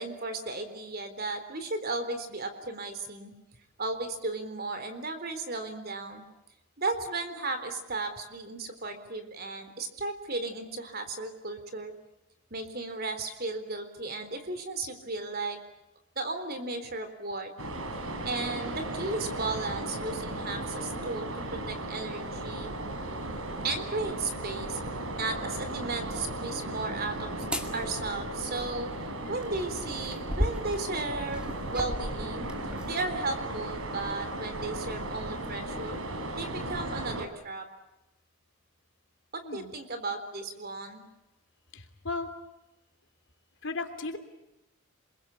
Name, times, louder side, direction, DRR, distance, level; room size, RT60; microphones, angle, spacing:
voice 1, 0.0-3.3 3.8-6.2 6.8-11.9 12.5-15.6 16.2-17.5 18.3-22.7 23.6-24.8 25.2-27.3 27.7-28.9 29.3-32.5 32.8-36.0 36.4-37.7 39.3-41.1, right 3 dB, 45° right, 8 dB, 3.9 m, -35 dB
sound 1, 17.6-37.3, right 1 dB, 75° right, 3.6 m, -36 dB
sound 2, 27.4-27.7 29.4-32.9 33.6-33.8, equal, 5° right, 2.3 m, -35 dB
voice 2, 41.7-42.3 43.6-44.2, left 3 dB, 60° left, 7 dB, 3.1 m, -35 dB
27.5 x 22.5 x 8.5 m, 0.93 s
head